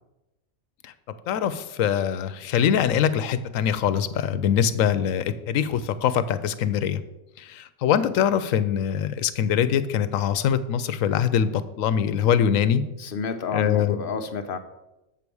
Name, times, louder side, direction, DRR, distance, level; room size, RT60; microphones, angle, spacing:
voice 1, 1.3-7.0 7.4-12.8 13.5-14.0, left 8 dB, 90° left, 13 dB, 1.0 m, -23 dB
voice 2, 13.0-14.6, left 5 dB, 50° left, 7 dB, 0.8 m, -30 dB
7.5 x 4.7 x 6.9 m, 0.95 s
omnidirectional pair, 1.4 m